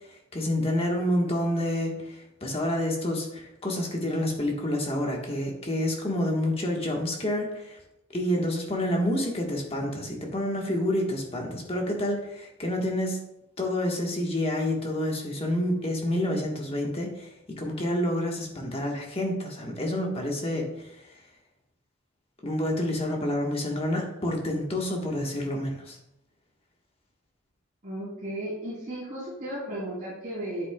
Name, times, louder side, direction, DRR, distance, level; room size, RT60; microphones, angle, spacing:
voice 1, 0.1-7.8 8.1-13.2 13.6-21.2 22.4-26.0, left 1 dB, 25° left, 0 dB, 1.4 m, -28 dB
voice 2, 27.8-30.7, right 1 dB, 30° right, -11 dB, 3.2 m, -35 dB
9.5 x 8.3 x 2.3 m, 0.85 s
head